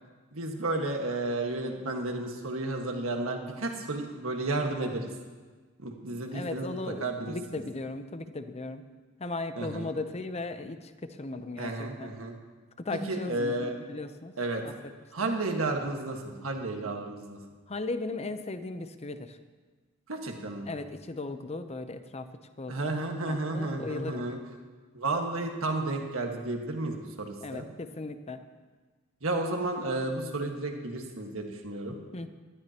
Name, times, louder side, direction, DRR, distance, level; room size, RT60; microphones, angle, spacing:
voice 1, 0.3-5.0 5.8-7.6 9.6-9.9 11.6-12.3 13.1-13.7 14.4-14.6 15.1-17.4 20.1-20.7 22.7-24.4 24.9-27.7 29.2-32.0, right 2 dB, 70° right, 3 dB, 1.6 m, -32 dB
voice 2, 6.3-8.8 9.2-12.1 12.8-14.3 14.6-14.7 15.2-15.3 17.7-19.4 20.6-22.3 22.6-24.2 27.4-28.4 32.1-32.3, left 2 dB, 30° left, 9 dB, 0.7 m, -37 dB
19.0 x 13.0 x 2.9 m, 1.4 s
head